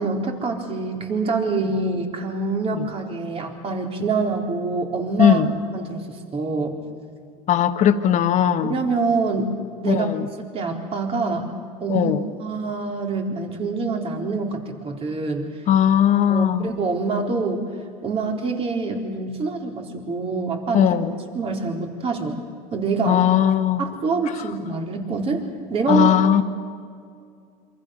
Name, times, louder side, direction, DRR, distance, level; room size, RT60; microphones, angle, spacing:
voice 1, 0.0-5.4 5.7-6.7 8.7-9.5 9.8-10.1 10.5-11.5 11.8-15.5 16.3-17.6 18.0-20.9 21.3-22.4 22.7-23.2 23.8-25.4 25.7-26.1, right 4 dB, 30° right, 4.0 m, -25 dB
voice 2, 5.2-5.5 7.5-8.8 9.9-10.3 11.9-12.2 15.7-16.7 20.7-21.1 23.1-23.8 25.9-26.4, left 9 dB, 45° left, 1.5 m, -18 dB
27.0 x 25.0 x 6.6 m
supercardioid pair, 125°, 18 cm